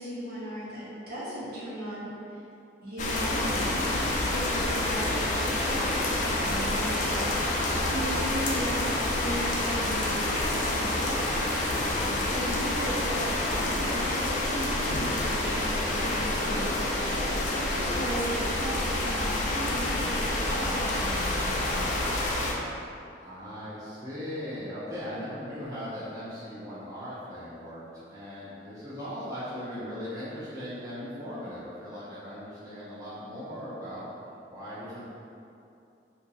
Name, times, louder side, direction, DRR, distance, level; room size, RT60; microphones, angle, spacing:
voice 1, 0.0-2.4 2.8-11.4 12.3-22.3, right 1 dB, 55° right, -9 dB, 1.0 m, -37 dB
sound 1, 3.0-22.5, left 1 dB, 40° left, 0.4 m, -28 dB
voice 2, 12.0-12.4 23.2-34.0 34.5-35.1, equal, 20° right, -13 dB, 0.6 m, -39 dB
2.7 x 2.6 x 3.9 m, 2.7 s
head